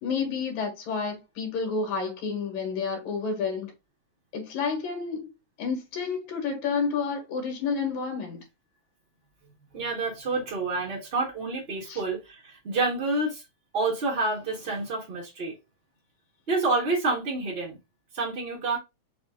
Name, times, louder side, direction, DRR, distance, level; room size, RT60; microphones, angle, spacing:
voice 1, 0.0-3.7 4.3-5.3 5.6-8.4 11.9-12.0, left 5 dB, 75° left, 2.9 m, -30 dB
voice 2, 9.7-13.4 13.7-15.5 16.5-17.8 18.1-18.8, right 3 dB, 50° right, 0.7 m, -28 dB
5.9 x 2.5 x 3.6 m
omnidirectional pair, 3.4 m